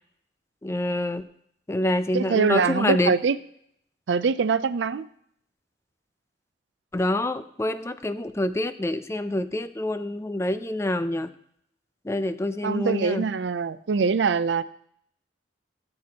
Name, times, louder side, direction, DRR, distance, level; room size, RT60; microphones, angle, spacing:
voice 1, 0.6-1.2 1.7-3.1 6.9-11.3 12.0-13.2, left 1 dB, 15° left, 12 dB, 0.5 m, -26 dB
voice 2, 2.1-3.4 4.1-5.1 12.6-14.6, right 5 dB, 80° right, 15 dB, 0.5 m, -23 dB
17.0 x 7.8 x 2.9 m, 0.70 s
head